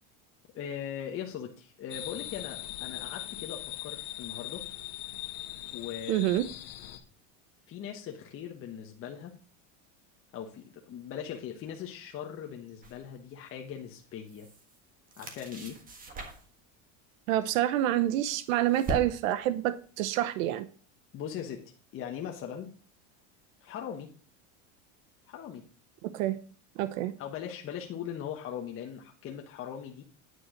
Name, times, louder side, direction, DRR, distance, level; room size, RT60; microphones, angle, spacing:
voice 1, 0.5-4.6 5.7-6.2 7.7-9.3 10.3-14.5 15.2-15.8 21.1-21.6 21.9-22.7 23.6-24.1 25.3-25.7 27.2-30.0, left 9 dB, 30° left, 1.2 m, -40 dB
sound 1, 1.9-7.0, left 16 dB, 65° left, 1.4 m, -40 dB
voice 2, 6.1-6.4 17.3-20.7 26.0-26.4 26.8-27.1, right 13 dB, 75° right, 0.9 m, -27 dB
sound 2, 12.8-13.0 14.0-14.8 15.1-16.6 17.8-19.4, right 2 dB, 20° right, 1.5 m, -40 dB
9.5 x 4.4 x 6.4 m
supercardioid pair, 150°, 40 cm